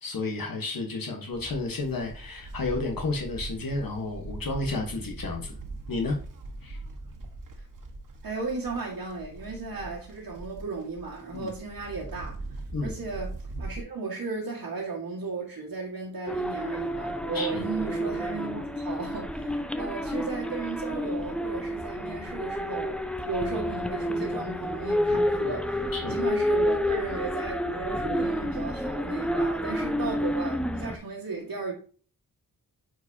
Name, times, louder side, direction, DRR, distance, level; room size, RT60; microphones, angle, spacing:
voice 1, 0.0-5.6 5.9-6.2 6.6-6.8 11.3-11.5 12.7-12.9 17.3-17.6 25.1-25.2 25.9-26.2, left 3 dB, 70° left, 1.3 m, -31 dB
Livestock farm animals working animals, 1.3-13.8, right 2 dB, 60° right, 1.5 m, -41 dB
voice 2, 8.2-31.7, right 3 dB, 80° right, 1.7 m, -35 dB
sound 1, 16.3-31.0, equal, 5° left, 0.6 m, -29 dB
9.0 x 4.8 x 2.8 m
wide cardioid pair, 95°, 36 cm